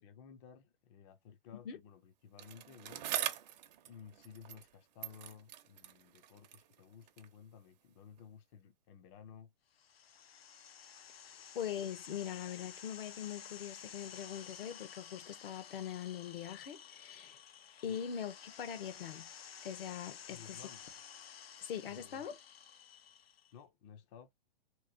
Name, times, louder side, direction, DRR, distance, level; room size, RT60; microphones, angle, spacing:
voice 1, 0.0-3.0 3.9-9.5 17.9-18.0 20.3-20.9 21.9-22.2 23.5-24.3, left 7 dB, 35° left, 0.5 m, -55 dB
Bicycle, 2.4-4.8 5.0-7.4 8.2-8.3, right 12 dB, 45° right, 0.7 m, -43 dB
sound 1, 9.8-23.5, left 8 dB, 90° left, 0.6 m, -53 dB
voice 2, 11.5-17.4 17.8-19.3 19.6-20.6 21.6-22.4, left 9 dB, 70° left, 0.9 m, -42 dB
3.0 x 3.0 x 2.6 m
hypercardioid pair, 140°, 29 cm